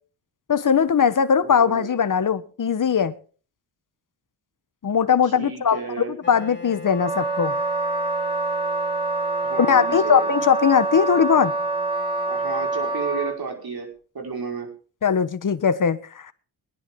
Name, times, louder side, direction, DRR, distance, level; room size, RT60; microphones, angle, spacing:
voice 1, 0.5-3.1 4.8-7.6 9.6-11.5 15.0-16.3, left 7 dB, 45° left, 1.3 m, -20 dB
voice 2, 1.4-1.9 5.2-6.1 9.4-10.3 12.2-13.9 14.1-14.7, right 5 dB, 55° right, 5.2 m, -32 dB
Wind instrument woodwind instrument, 6.2-13.2, left 4 dB, 25° left, 2.6 m, -42 dB
Wind instrument woodwind instrument 2, 6.8-13.4, right 3 dB, 10° right, 5.1 m, -26 dB
22.0 x 10.5 x 3.8 m
cardioid pair, 80°, 43 cm